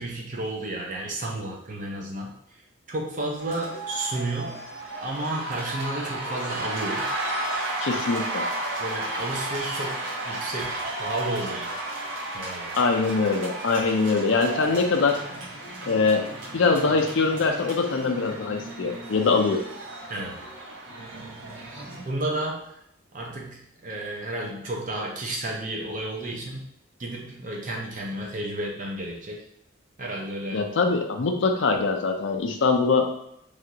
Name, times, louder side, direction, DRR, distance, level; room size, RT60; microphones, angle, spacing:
voice 1, 0.0-2.3 2.9-4.6 5.0-7.1 8.8-11.7 12.3-12.8 20.1-20.4 21.1-21.3 22.0-22.8 23.1-26.7 27.0-29.4 30.0-30.7, right 1 dB, 40° right, -1 dB, 0.6 m, -32 dB
sound 1, 3.4-22.0, right 1 dB, 75° right, 1.0 m, -33 dB
voice 2, 7.8-8.5 12.8-15.2 15.9-16.3 16.5-19.6 30.5-33.1, left 4 dB, 65° left, 4 dB, 0.5 m, -23 dB
3.4 x 2.4 x 2.8 m, 0.76 s
head